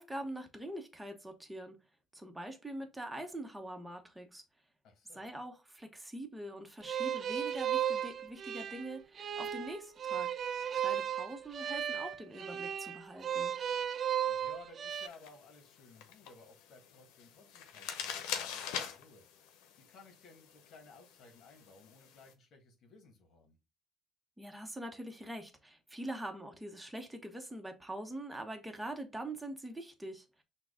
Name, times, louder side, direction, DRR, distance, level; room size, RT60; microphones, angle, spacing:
voice 1, 0.0-1.7 2.1-4.4 5.1-10.3 10.7-13.5 24.4-30.2, right 1 dB, 10° right, 1.0 m, -44 dB
voice 2, 4.8-5.2 14.2-19.3 19.9-23.6, left 3 dB, 60° left, 1.5 m, -58 dB
sound 1, 6.8-15.1, right 9 dB, 45° right, 0.5 m, -35 dB
sound 2, 14.9-22.3, left 8 dB, 85° left, 0.8 m, -45 dB
6.0 x 2.3 x 3.6 m
cardioid pair, 100°, 0 cm